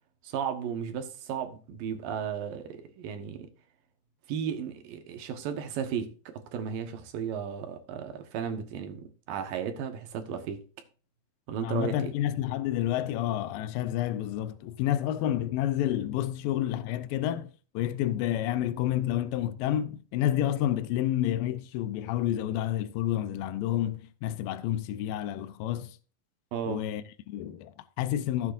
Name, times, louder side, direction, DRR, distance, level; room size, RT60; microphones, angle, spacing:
voice 1, 0.2-3.5 4.3-10.6 11.5-12.1 26.5-26.8, right 8 dB, 80° right, 3.0 m, -34 dB
voice 2, 11.6-26.0 26.7-28.5, left 12 dB, 85° left, 2.4 m, -29 dB
15.5 x 8.4 x 2.6 m
omnidirectional pair, 4.0 m